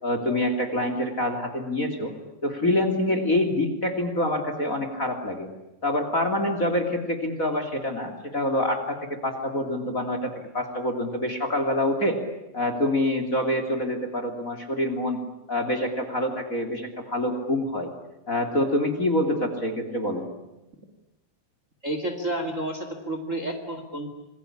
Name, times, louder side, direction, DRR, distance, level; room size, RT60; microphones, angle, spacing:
voice 1, 0.0-2.1 2.4-5.5 5.8-12.2 12.5-15.2 15.5-17.9 18.3-20.2, left 1 dB, 25° left, 7 dB, 2.8 m, -26 dB
voice 2, 21.8-24.1, right 1 dB, 25° right, 6 dB, 2.5 m, -30 dB
27.0 x 22.0 x 9.9 m, 0.95 s
omnidirectional pair, 3.9 m